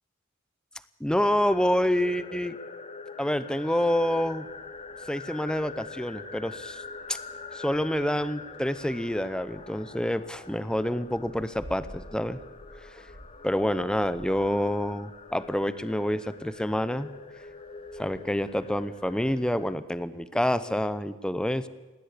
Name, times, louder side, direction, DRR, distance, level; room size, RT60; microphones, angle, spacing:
voice 1, 1.0-2.6 3.2-4.5 5.1-6.8 7.1-7.2 7.5-12.4 12.8-13.1 13.4-17.1 18.0-21.7, equal, 5° left, 14 dB, 0.7 m, -27 dB
sound 1, 1.2-19.7, left 4 dB, 30° left, 1.0 m, -44 dB
sound 2, 3.8-19.6, equal, 85° right, 8.0 m, -54 dB
19.0 x 17.0 x 8.4 m, 1.2 s
head